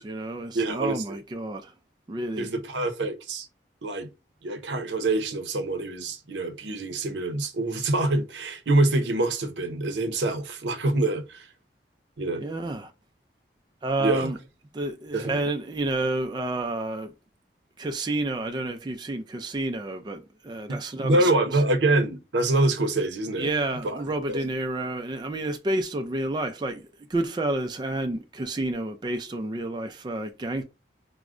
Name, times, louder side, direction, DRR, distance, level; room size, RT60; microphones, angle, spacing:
voice 1, 0.0-1.7 2.1-2.5 12.4-12.9 13.8-14.4 14.7-17.1 17.8-20.2 20.4-21.3 23.4-26.8 27.1-30.6, right 2 dB, 25° right, 0.3 m, -29 dB
voice 2, 0.5-1.2 2.4-3.5 3.8-4.1 4.4-11.5 12.2-12.4 14.0-14.3 15.1-15.4 20.7-23.5 23.8-24.0 24.3-24.4, right 2 dB, 85° right, 0.6 m, -25 dB
4.6 x 2.0 x 2.4 m
head